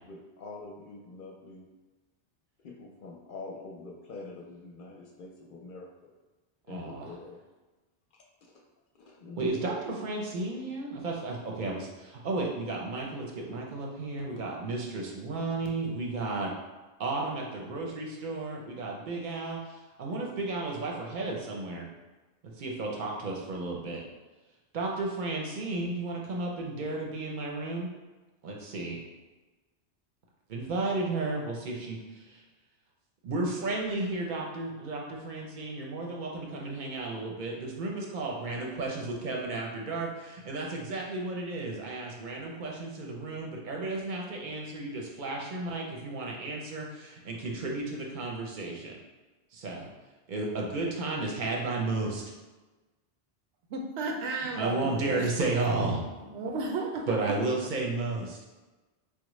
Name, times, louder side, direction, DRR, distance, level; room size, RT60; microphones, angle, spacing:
voice 1, 0.1-1.7 2.6-6.1 6.7-7.4 8.1-8.5 9.0-9.5, left 3 dB, 60° left, -1 dB, 0.6 m, -45 dB
voice 2, 6.7-7.1 9.4-16.5 17.0-21.9 22.6-24.0 24.7-27.9 28.4-29.0 30.5-32.4 33.2-49.0 49.5-49.9 50.3-52.2 54.6-56.0 57.1-58.4, right 2 dB, 50° right, -1 dB, 0.7 m, -33 dB
voice 3, 53.7-55.2 56.3-57.1, right 3 dB, 85° right, 1 dB, 0.9 m, -33 dB
4.4 x 2.1 x 3.0 m, 1.2 s
omnidirectional pair, 1.1 m